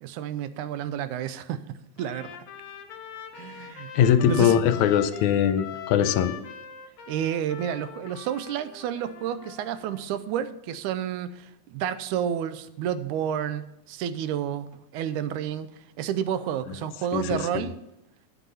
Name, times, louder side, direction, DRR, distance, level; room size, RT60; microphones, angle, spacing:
voice 1, 0.0-2.4 3.3-3.9 4.2-4.6 7.1-15.7 16.0-17.8, right 9 dB, 90° right, 13 dB, 2.1 m, -30 dB
Trumpet, 2.0-10.1, left 9 dB, 65° left, 2.1 m, -42 dB
voice 2, 4.0-6.4 17.1-17.6, left 9 dB, 85° left, 12 dB, 2.1 m, -21 dB
10.0 x 8.3 x 5.5 m, 0.86 s
omnidirectional pair, 3.4 m